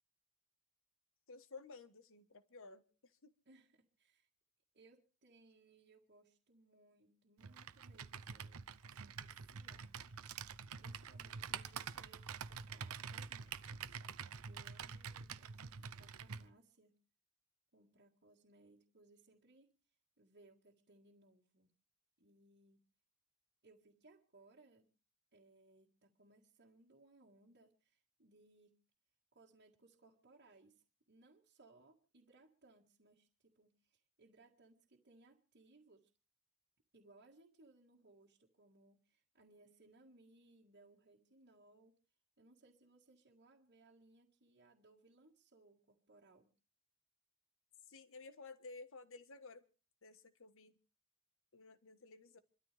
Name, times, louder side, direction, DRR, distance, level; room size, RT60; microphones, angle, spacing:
voice 1, 1.3-3.3 47.9-49.6 50.0-50.8 51.5-52.4, left 3 dB, 65° left, 12 dB, 1.4 m, -55 dB
voice 2, 3.5-4.3 4.7-10.4 10.8-14.0 14.5-17.0 17.7-19.7 20.2-21.7 22.2-22.8 23.6-24.9 25.3-28.8 29.3-36.1 36.9-42.0 42.4-46.5, right 2 dB, 50° right, -3 dB, 1.9 m, -67 dB
Computer keyboard, 7.4-16.5, right 6 dB, 80° right, 0.8 m, -47 dB
27.5 x 13.0 x 3.4 m, 0.34 s
head